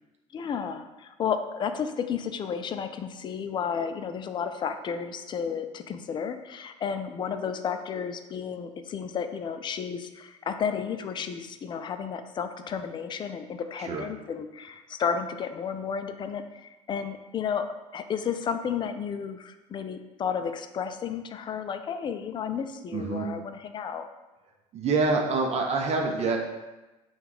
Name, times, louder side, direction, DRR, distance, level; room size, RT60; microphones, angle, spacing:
voice 1, 0.3-17.7 17.9-24.1, left 7 dB, 30° left, 9 dB, 0.4 m, -32 dB
voice 2, 22.9-23.3 24.7-26.4, right 3 dB, 40° right, 1 dB, 0.6 m, -26 dB
3.5 x 2.3 x 4.5 m, 1.1 s
hypercardioid pair, 70°, 17 cm